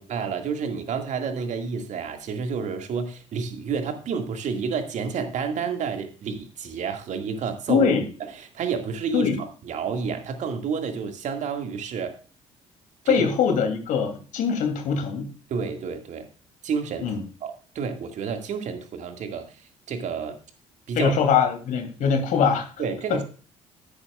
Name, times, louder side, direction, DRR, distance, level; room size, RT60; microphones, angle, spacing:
voice 1, 0.0-7.9 8.5-12.2 13.0-13.2 15.5-16.3 16.6-17.1 17.4-19.5 19.9-20.4 20.9-21.2 22.0-22.1 22.8-23.2, right 6 dB, 50° right, 6 dB, 2.1 m, -30 dB
voice 2, 7.7-8.1 9.1-9.4 13.1-15.3 17.0-17.2 20.9-22.7 23.1-23.2, left 6 dB, 55° left, 5 dB, 2.9 m, -22 dB
13.0 x 11.0 x 2.4 m, 0.37 s
figure-of-eight pair, 50°, 16 cm